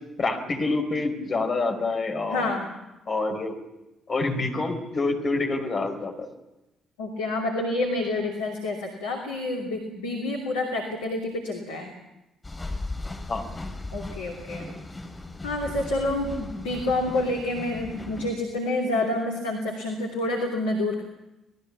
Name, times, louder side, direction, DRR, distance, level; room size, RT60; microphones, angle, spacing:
voice 1, 0.2-2.5 3.1-3.6 4.1-6.3 13.3-13.4, left 3 dB, 40° left, 4 dB, 4.5 m, -27 dB
voice 2, 2.3-2.7 7.0-11.9 13.9-14.7 15.4-21.0, left 2 dB, 70° left, 0 dB, 2.8 m, -28 dB
sound 1, 12.4-18.3, left 2 dB, 20° left, 4.3 m, -37 dB
27.0 x 18.5 x 7.3 m, 0.98 s
figure-of-eight pair, 45°, 0 cm